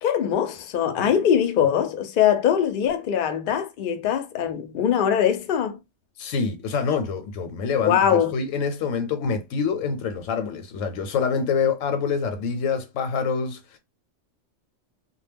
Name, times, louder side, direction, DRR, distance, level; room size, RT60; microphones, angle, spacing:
voice 1, 0.0-5.8 7.8-8.4, left 9 dB, 60° left, 0.6 m, -22 dB
voice 2, 6.2-13.8, left 5 dB, 85° left, 0.9 m, -26 dB
2.2 x 2.0 x 3.3 m
omnidirectional pair, 1.3 m